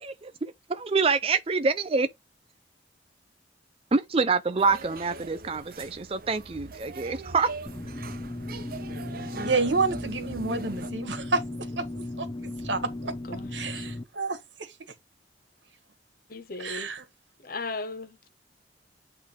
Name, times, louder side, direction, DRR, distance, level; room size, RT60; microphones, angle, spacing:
voice 1, 0.0-2.1 3.9-7.5, right 4 dB, 30° right, 0.5 m, -26 dB
sound 1, 4.6-10.9, right 3 dB, 55° right, 0.9 m, -41 dB
sound 2, 7.7-14.0, left 2 dB, 20° left, 0.5 m, -36 dB
voice 2, 9.4-11.4 11.8-13.1 13.5-14.7 16.6-17.0, right 3 dB, 85° right, 1.6 m, -29 dB
voice 3, 13.2-13.9 16.3-16.9 17.4-18.3, left 3 dB, 55° left, 1.0 m, -37 dB
8.7 x 3.3 x 4.6 m
head